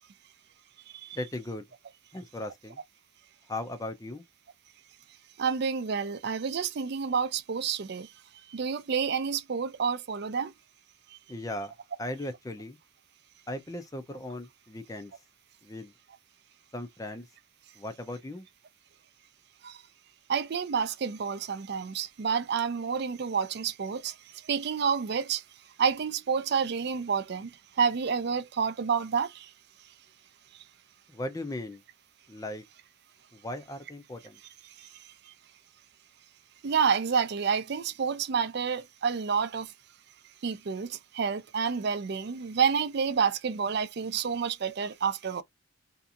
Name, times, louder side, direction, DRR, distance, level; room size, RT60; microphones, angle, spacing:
voice 1, 1.1-1.7 2.1-2.8 3.5-4.2 11.3-11.7 12.0-12.8 13.5-15.1 15.6-15.9 16.7-17.3 17.8-18.5 31.1-31.8 32.3-32.6 33.3-34.4, left 1 dB, 15° left, 0.4 m, -37 dB
voice 2, 5.4-8.1 8.5-10.5 19.6-19.8 20.3-25.4 25.8-27.5 27.8-29.5 34.8-34.9 35.3-35.4 36.6-39.7 40.4-45.4, right 6 dB, 50° right, 0.4 m, -29 dB
2.8 x 2.4 x 2.4 m
head